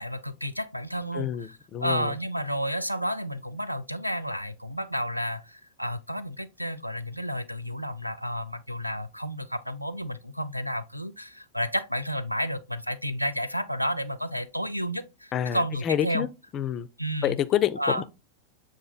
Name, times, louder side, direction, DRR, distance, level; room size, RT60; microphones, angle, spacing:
voice 1, 0.0-16.3 17.0-17.4 17.8-18.0, equal, 90° right, 0.3 m, -31 dB
voice 2, 1.1-2.1 15.3-16.3 16.5-16.9 17.2-18.0, left 10 dB, 30° left, 0.3 m, -28 dB
7.1 x 2.4 x 2.3 m
figure-of-eight pair, 90°, 0 cm